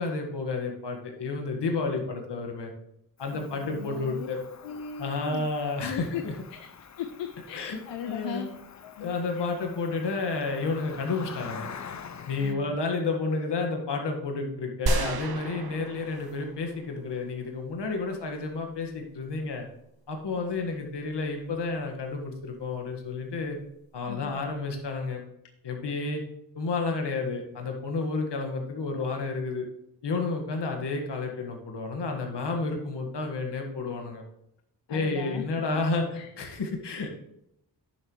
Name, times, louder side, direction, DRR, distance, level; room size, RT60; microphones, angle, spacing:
voice 1, 0.0-2.7 3.2-4.4 5.0-6.3 7.5-7.8 8.0-8.5 9.0-11.7 12.3-19.7 20.1-23.6 23.9-25.2 25.6-26.2 26.6-29.7 30.0-34.2 34.9-37.1, left 3 dB, 70° left, 2 dB, 1.9 m, -31 dB
Cricket, 3.2-12.5, left 6 dB, 40° left, 0.7 m, -46 dB
voice 2, 3.3-4.3 4.6-5.5 5.8-6.2 6.5-6.7 7.0-9.5 12.4-12.8 20.3-20.8 24.1-24.4 34.9-35.4 35.7-35.8 36.1-36.3, left 8 dB, 85° left, 8 dB, 0.7 m, -38 dB
sound 1, 14.9-17.1, right 3 dB, 60° right, 1.1 m, -31 dB
9.9 x 7.2 x 3.2 m, 0.78 s
cardioid pair, 50°, 43 cm